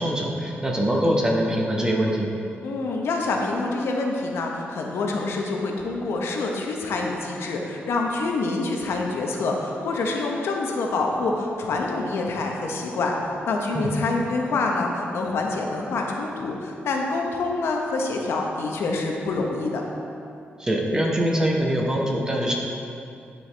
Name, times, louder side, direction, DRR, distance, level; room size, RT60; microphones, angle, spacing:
voice 1, 0.0-2.3 13.7-13.9 20.6-22.5, equal, 15° right, -1 dB, 0.9 m, -23 dB
voice 2, 2.6-19.8, left 3 dB, 80° left, 0 dB, 0.9 m, -26 dB
10.0 x 4.6 x 3.3 m, 2.6 s
wide cardioid pair, 125°, 4 cm